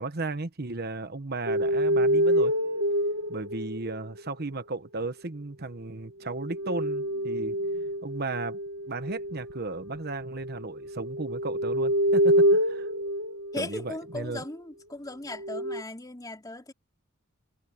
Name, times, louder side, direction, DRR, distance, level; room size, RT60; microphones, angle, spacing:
voice 1, 0.0-2.5 3.3-7.6 8.0-8.6 8.9-12.9 13.6-14.4, right 3 dB, 50° right, 1.1 m, -35 dB
sound 1, 1.5-4.3 6.3-14.0 15.4-15.8, equal, 85° right, 2.1 m, -27 dB
voice 2, 13.5-16.7, left 2 dB, 20° left, 3.0 m, -38 dB
head